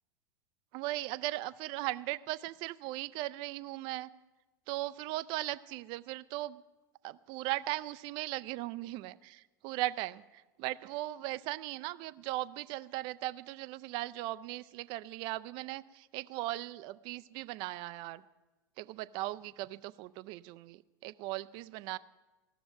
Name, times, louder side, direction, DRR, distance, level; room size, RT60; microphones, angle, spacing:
voice 1, 0.7-4.1 4.7-6.6 7.0-18.2 18.8-22.0, right 17 dB, 45° right, 15 dB, 0.5 m, -38 dB
15.0 x 6.9 x 9.1 m, 1.1 s
figure-of-eight pair, 85°, 11 cm